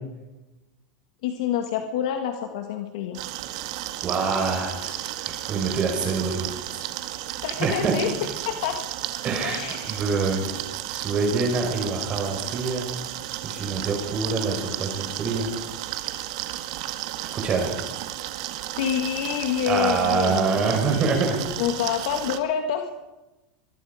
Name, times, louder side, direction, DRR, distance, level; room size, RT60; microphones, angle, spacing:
voice 1, 1.2-3.2 7.4-8.1 8.4-8.8 9.4-10.0 10.3-10.4 18.8-21.0 21.6-22.9, left 9 dB, 75° left, 5 dB, 1.8 m, -27 dB
sound 1, 3.1-22.4, right 14 dB, 65° right, 1.8 m, -33 dB
voice 2, 4.0-4.9 5.5-6.8 7.6-7.9 9.2-9.6 9.8-10.4 10.9-12.9 13.4-15.5 17.4-17.7 19.7-21.4, right 4 dB, 30° right, 3 dB, 4.9 m, -25 dB
23.5 x 23.5 x 5.1 m, 1.1 s
supercardioid pair, 125°, 3 cm